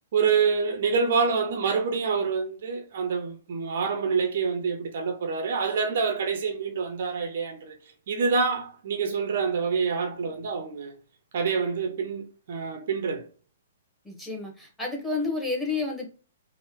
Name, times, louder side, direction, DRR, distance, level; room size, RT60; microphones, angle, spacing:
voice 1, 0.1-7.8 8.1-10.9 11.3-13.3, right 5 dB, 50° right, 0.4 m, -26 dB
voice 2, 14.0-16.0, left 3 dB, 5° left, 1.0 m, -30 dB
3.4 x 2.0 x 2.8 m
figure-of-eight pair, 115°, 0 cm